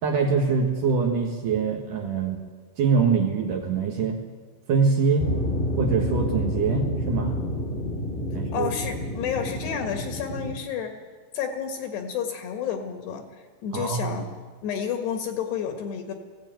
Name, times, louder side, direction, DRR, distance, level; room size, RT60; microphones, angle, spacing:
voice 1, 0.0-2.4 2.8-4.2 4.7-5.3 5.8-7.3 8.3-8.7 13.7-14.2, right 5 dB, 60° right, 2 dB, 2.2 m, -24 dB
sound 1, 5.2-10.5, left 1 dB, 15° left, 1.7 m, -29 dB
voice 2, 8.5-10.9 11.3-13.2 13.6-14.3 14.6-16.1, left 8 dB, 65° left, 5 dB, 3.3 m, -30 dB
20.5 x 16.5 x 9.1 m, 1.5 s
omnidirectional pair, 5.7 m